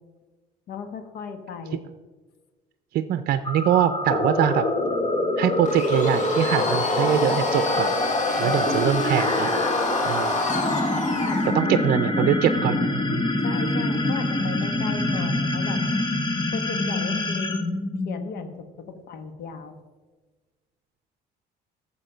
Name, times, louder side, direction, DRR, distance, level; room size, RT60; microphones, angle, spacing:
voice 1, 0.7-1.8 8.4-8.9 10.3-10.4 11.2-11.9 13.4-15.8 16.5-17.6 18.0-19.8, left 5 dB, 70° left, 8 dB, 1.4 m, -36 dB
voice 2, 2.9-4.7 5.4-7.9 8.4-9.5 10.1-10.4 11.5-12.9, right 11 dB, 65° right, 11 dB, 0.6 m, -23 dB
sound 1, 3.4-18.6, left 2 dB, 25° left, 1.3 m, -25 dB
sound 2, 4.7-17.6, left 2 dB, 85° left, 2.2 m, -40 dB
Domestic sounds home sounds, 5.7-11.5, left 3 dB, 45° left, 1.7 m, -31 dB
13.5 x 7.2 x 5.1 m, 1.3 s
cardioid pair, 110°, 17 cm